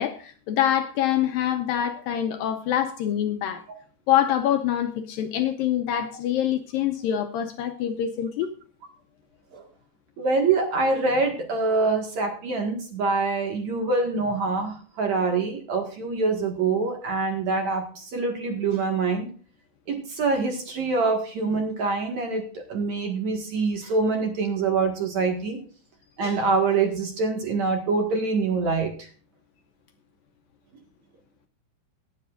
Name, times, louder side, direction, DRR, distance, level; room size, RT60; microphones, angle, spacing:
voice 1, 0.0-3.6 4.1-8.5, left 10 dB, 80° left, 2.1 m, -25 dB
voice 2, 10.2-19.3 19.9-25.6 26.2-29.1, right 4 dB, 55° right, 2.5 m, -25 dB
18.0 x 10.5 x 2.5 m
omnidirectional pair, 4.9 m